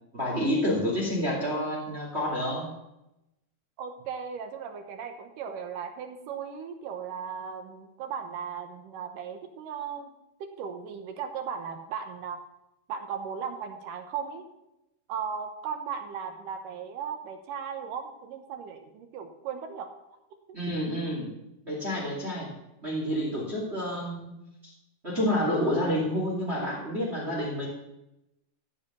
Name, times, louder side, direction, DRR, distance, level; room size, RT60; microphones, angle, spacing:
voice 1, 0.1-2.7 20.5-21.3 21.7-22.5 22.8-24.4 25.0-27.7, equal, 20° right, -4 dB, 2.3 m, -29 dB
voice 2, 3.8-10.1 10.4-12.4 12.9-14.5 15.1-19.9, right 7 dB, 70° right, 5 dB, 2.5 m, -37 dB
14.0 x 5.0 x 7.0 m, 0.90 s
omnidirectional pair, 4.3 m